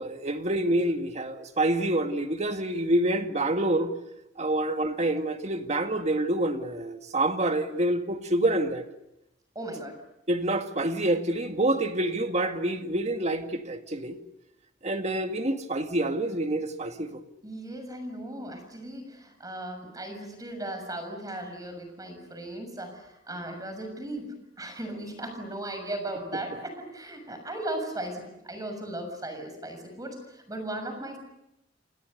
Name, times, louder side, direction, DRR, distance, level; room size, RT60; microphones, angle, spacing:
voice 1, 0.0-3.9 4.4-8.9 10.3-14.2 14.8-17.2, right 1 dB, 35° right, 2.0 m, -27 dB
voice 2, 9.5-10.0 17.4-31.2, right 1 dB, 20° right, 6.7 m, -37 dB
29.0 x 26.0 x 6.7 m
head